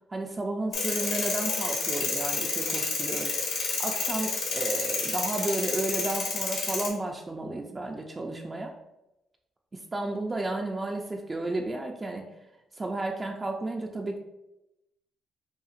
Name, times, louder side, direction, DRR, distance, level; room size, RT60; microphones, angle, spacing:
voice 1, 0.0-8.7 9.7-12.3 12.8-14.2, right 2 dB, 25° right, 1 dB, 0.4 m, -33 dB
sound 1, 0.7-6.9, left 4 dB, 70° left, 1.3 m, -30 dB
5.5 x 2.4 x 2.5 m, 0.91 s
cardioid pair, 90°, 0 cm